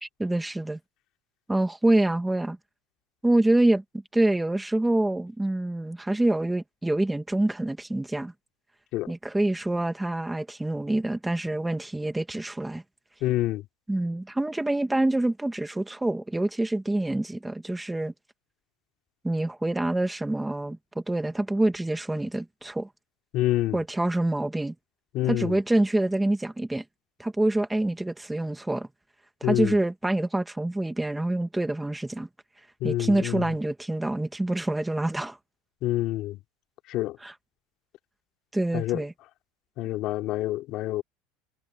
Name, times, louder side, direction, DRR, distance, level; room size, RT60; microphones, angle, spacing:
voice 1, 0.0-0.8 1.5-2.6 3.2-3.8 4.1-8.3 9.1-12.8 13.9-18.1 19.2-22.9 23.7-24.7 25.3-26.8 27.2-28.9 29.4-32.3 32.8-35.4 37.2-37.3 38.5-39.1, right 1 dB, 5° right, 1.2 m, -26 dB
voice 2, 13.2-13.7 23.3-23.8 25.1-25.6 29.4-29.8 32.8-33.5 35.8-36.4 36.9-37.2 38.7-39.0 39.8-41.0, left 16 dB, 40° left, 3.3 m, -27 dB
cardioid pair, 175°, 0 cm